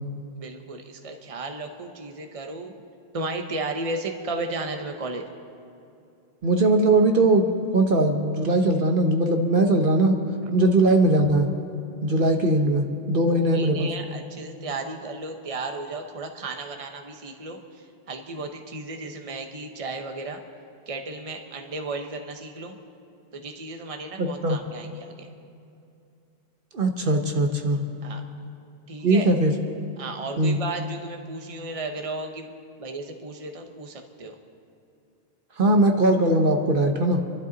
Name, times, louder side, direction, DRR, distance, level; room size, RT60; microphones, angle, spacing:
voice 1, 0.4-2.7 3.1-5.2 10.4-10.5 13.3-20.4 20.9-22.8 23.3-25.3 28.0-28.2 28.9-29.3 30.0-32.5 32.8-34.3, right 3 dB, 35° right, 4 dB, 1.0 m, -34 dB
voice 2, 6.4-7.5 7.7-10.2 10.5-11.5 12.0-13.9 24.2-24.6 26.7-27.8 29.0-29.5 30.4-30.6 35.6-37.2, right 2 dB, 55° right, 4 dB, 1.2 m, -20 dB
27.0 x 12.5 x 4.0 m, 2.6 s
omnidirectional pair, 1.1 m